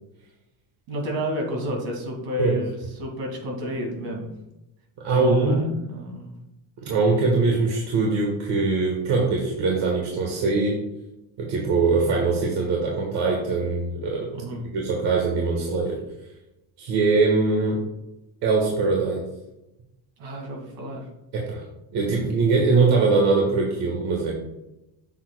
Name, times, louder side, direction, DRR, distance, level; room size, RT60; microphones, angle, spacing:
voice 1, 0.9-4.3 5.1-6.4 14.3-14.6 20.2-21.1 22.1-22.3, equal, 85° right, 0 dB, 2.2 m, -31 dB
voice 2, 5.0-5.7 6.8-10.8 11.4-14.3 14.7-16.0 16.8-17.8 18.4-19.2 21.3-21.6 21.9-24.3, right 3 dB, 70° right, -1 dB, 1.4 m, -22 dB
7.3 x 6.3 x 2.2 m, 0.93 s
cardioid pair, 130°, 42 cm